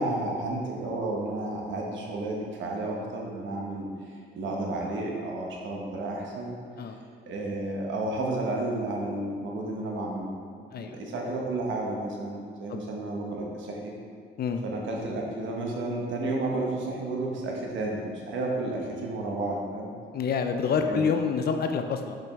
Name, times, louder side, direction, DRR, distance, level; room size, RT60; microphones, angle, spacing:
voice 1, 0.0-3.9 4.3-6.6 7.3-13.9 14.6-19.9 20.9-21.0, right 2 dB, 70° right, -1 dB, 1.1 m, -32 dB
voice 2, 20.1-22.2, left 6 dB, 50° left, 6 dB, 0.5 m, -27 dB
5.4 x 5.1 x 3.6 m, 2.1 s
cardioid pair, 90°, 20 cm